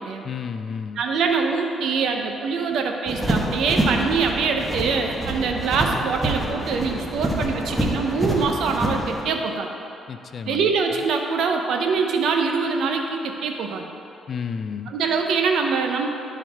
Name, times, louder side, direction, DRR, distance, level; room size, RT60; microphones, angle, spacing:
voice 1, 0.2-1.0 10.1-10.7 14.3-14.9, left 6 dB, 50° left, 10 dB, 0.4 m, -31 dB
voice 2, 1.0-9.7 10.5-13.8 14.9-16.1, right 5 dB, 75° right, 3 dB, 0.7 m, -24 dB
sound 1, 3.1-9.2, right 1 dB, 10° right, 1.3 m, -26 dB
11.5 x 4.5 x 3.5 m, 2.9 s
cardioid pair, 90°, 0 cm